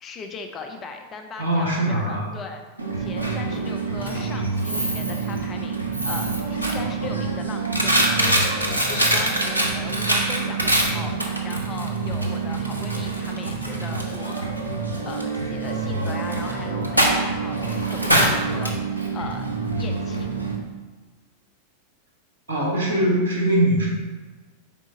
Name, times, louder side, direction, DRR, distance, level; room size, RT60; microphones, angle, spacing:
voice 1, 0.0-2.6 3.0-11.1 11.4-14.5 15.1-19.5 19.8-20.3, left 4 dB, 25° left, 4 dB, 0.4 m, -38 dB
voice 2, 1.4-2.3 22.5-23.9, right 1 dB, 65° right, -3 dB, 1.0 m, -21 dB
Coin (dropping), 2.8-20.6, right 2 dB, 85° right, 0.5 m, -24 dB
4.9 x 3.6 x 2.7 m, 1.4 s
figure-of-eight pair, 90°, 0 cm